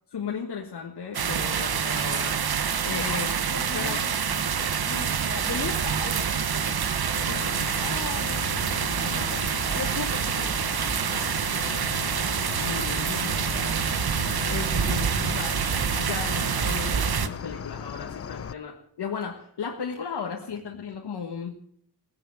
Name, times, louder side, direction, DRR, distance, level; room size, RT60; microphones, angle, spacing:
voice 1, 0.1-2.4 2.8-3.3 3.7-4.8 12.6-13.6 14.5-15.7 16.0-21.5, left 6 dB, 70° left, 1 dB, 1.6 m, -35 dB
sound 1, 1.1-17.3, right 7 dB, 60° right, 1.1 m, -27 dB
voice 2, 2.9-4.6 4.9-10.9, left 5 dB, 55° left, 2 dB, 2.7 m, -38 dB
Cricket, 7.1-18.5, left 7 dB, 35° left, 0.5 m, -37 dB
18.0 x 9.7 x 7.5 m, 0.66 s
wide cardioid pair, 95°, 41 cm